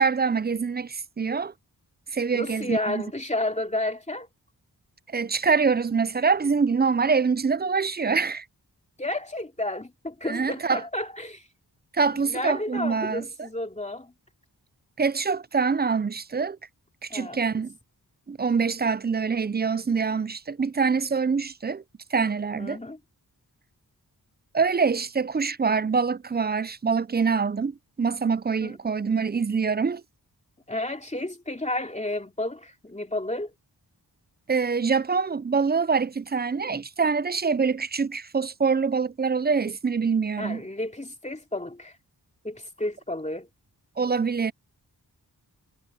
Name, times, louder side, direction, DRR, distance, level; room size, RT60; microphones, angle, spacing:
voice 1, 0.0-1.5 2.1-3.0 5.1-8.5 10.3-10.8 11.9-13.2 15.0-16.6 17.0-17.7 18.3-21.8 22.1-22.8 24.5-30.0 34.5-40.6 44.0-44.5, right 5 dB, 25° right, 0.4 m, -25 dB
voice 2, 2.3-4.3 9.0-11.5 12.1-14.1 17.1-17.4 22.5-23.0 28.6-28.8 30.7-33.5 40.4-42.0 42.4-43.5, left 1 dB, 15° left, 2.8 m, -31 dB
wide cardioid pair, 65°, 39 cm